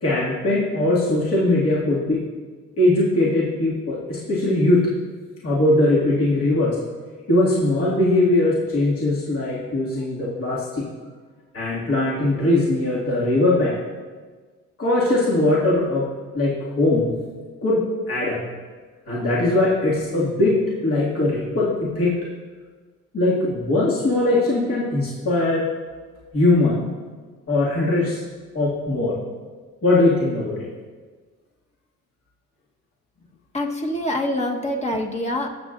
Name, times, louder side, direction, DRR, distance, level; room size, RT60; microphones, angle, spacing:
voice 1, 0.0-2.2 2.8-4.9 5.4-6.8 7.3-10.9 11.5-13.8 14.8-16.1 16.3-17.1 17.6-18.4 19.1-22.2 23.1-25.7 26.3-26.9 27.5-28.2 28.5-29.2 29.8-30.6, left 2 dB, 50° left, -7 dB, 2.4 m, -20 dB
voice 2, 33.5-35.5, left 1 dB, 20° left, 1 dB, 1.4 m, -25 dB
18.0 x 7.4 x 2.6 m, 1.5 s
cardioid pair, 90°, 30 cm